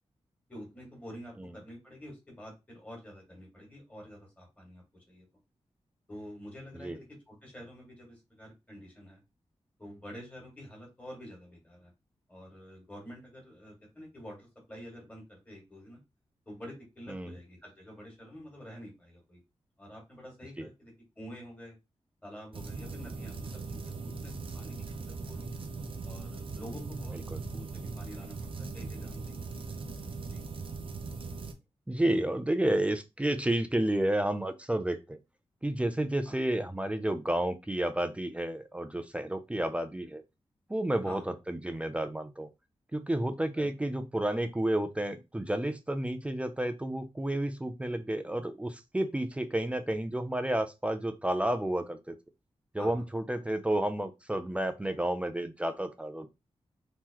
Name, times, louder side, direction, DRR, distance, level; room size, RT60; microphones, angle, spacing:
voice 1, 0.5-5.3 6.1-9.2 9.8-11.9 12.3-16.0 16.5-19.4 19.8-21.7 22.2-25.6 26.0-29.7 30.3-30.4 36.2-36.4 41.0-41.2 43.6-43.7 52.8-53.0, equal, 15° left, -1 dB, 1.9 m, -48 dB
sound 1, 22.5-31.5, right 4 dB, 55° right, 0.6 m, -40 dB
voice 2, 31.9-35.2 35.6-40.2 40.7-41.2 41.5-42.5 42.9-52.2 52.7-56.3, right 1 dB, 10° right, 8 dB, 0.4 m, -31 dB
3.7 x 2.9 x 2.9 m, 0.24 s
wide cardioid pair, 145°, 11 cm